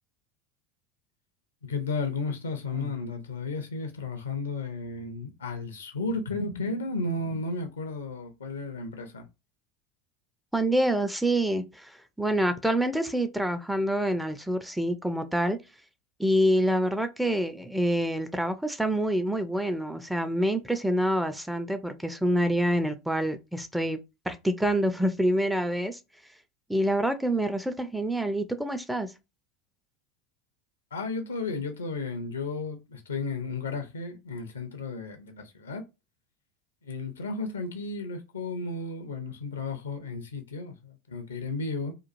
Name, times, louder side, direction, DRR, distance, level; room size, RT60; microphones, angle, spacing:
voice 1, 1.6-9.3 30.9-35.9 36.8-41.9, left 3 dB, 75° left, 0.6 m, -33 dB
voice 2, 10.5-11.9 12.2-15.6 16.2-24.0 24.3-26.0 26.7-29.1, right 1 dB, ahead, 0.4 m, -26 dB
2.9 x 2.3 x 2.5 m
figure-of-eight pair, 75°, 0 cm